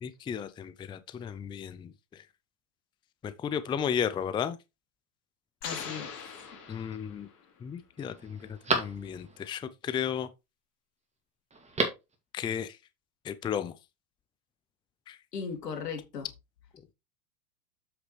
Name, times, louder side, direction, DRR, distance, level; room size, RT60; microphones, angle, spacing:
voice 1, 0.0-1.9 3.2-4.6 6.7-7.3 7.6-10.3 12.3-12.7 13.3-13.7 15.1-15.2, left 8 dB, 10° left, 0.4 m, -34 dB
voice 2, 5.6-6.1 15.3-16.3, left 6 dB, 90° left, 2.8 m, -37 dB
sound 1, 5.6-7.5, left 6 dB, 40° left, 4.3 m, -41 dB
Telephone, 6.4-7.0 7.5-7.6 8.0-9.5 11.5-12.2 12.4-12.5, right 3 dB, 15° right, 2.2 m, -33 dB
7.9 x 6.3 x 3.2 m
hypercardioid pair, 115°, 47 cm